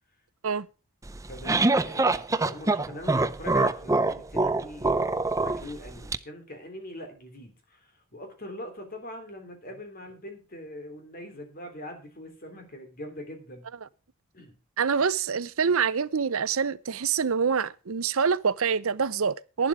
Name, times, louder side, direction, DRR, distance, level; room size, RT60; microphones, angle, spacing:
sound 1, 1.1-6.2, right 2 dB, 15° right, 0.5 m, -25 dB
voice 1, 1.3-4.9 5.4-13.6 14.3-14.6, left 1 dB, 40° left, 3.3 m, -42 dB
voice 2, 14.8-19.7, right 6 dB, 70° right, 0.6 m, -26 dB
11.5 x 10.5 x 4.8 m
head